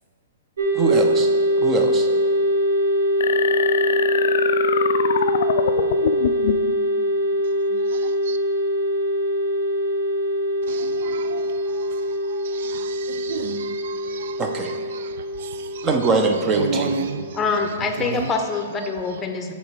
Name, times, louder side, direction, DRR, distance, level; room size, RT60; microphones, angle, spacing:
sound 1, 0.6-17.9, equal, 75° right, 1.1 m, -23 dB
voice 1, 0.7-1.3 1.6-2.1 14.4-14.7 15.8-17.0, right 3 dB, 25° right, 4 dB, 0.8 m, -22 dB
sound 2, 3.2-6.7, left 8 dB, 60° left, 0.3 m, -24 dB
voice 2, 7.7-8.4 10.7-18.4 19.1-19.2, right 5 dB, 60° right, 11 dB, 0.4 m, -34 dB
voice 3, 17.3-19.5, left 4 dB, 15° left, 5 dB, 0.8 m, -25 dB
6.9 x 4.3 x 5.0 m, 2.2 s
hypercardioid pair, 120°, 0 cm